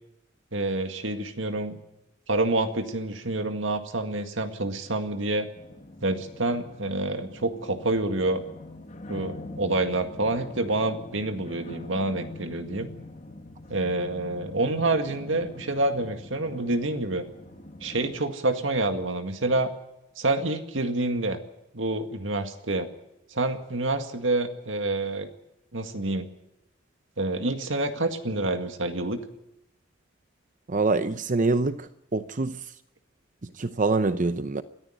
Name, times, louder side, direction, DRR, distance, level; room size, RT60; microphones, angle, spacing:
voice 1, 0.5-1.8 2.3-5.5 6.0-8.4 9.1-12.9 13.7-17.2 17.8-19.7 20.2-21.4 21.7-22.9 23.3-25.3 25.7-26.3 27.2-29.2, right 2 dB, 85° right, 2.0 m, -27 dB
sound 1, 5.6-18.1, left 2 dB, 40° left, 2.1 m, -43 dB
voice 2, 30.7-32.6 33.6-34.6, right 3 dB, 40° right, 0.7 m, -25 dB
22.0 x 14.0 x 9.2 m
head